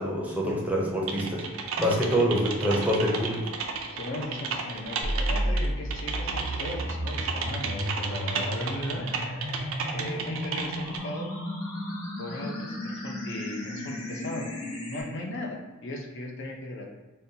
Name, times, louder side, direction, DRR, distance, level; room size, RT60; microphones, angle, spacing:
voice 1, 0.0-1.5 1.8-3.5, equal, 5° right, -4 dB, 0.5 m, -26 dB
Typing, 1.1-11.0, right 4 dB, 65° right, 0.4 m, -33 dB
voice 2, 1.9-2.3 3.9-9.1 9.9-11.3 12.2-16.9, left 1 dB, 55° left, 1 dB, 0.6 m, -37 dB
sound 1, 5.0-15.0, equal, 80° left, 0.9 m, -33 dB
5.2 x 2.2 x 2.7 m, 1.2 s
head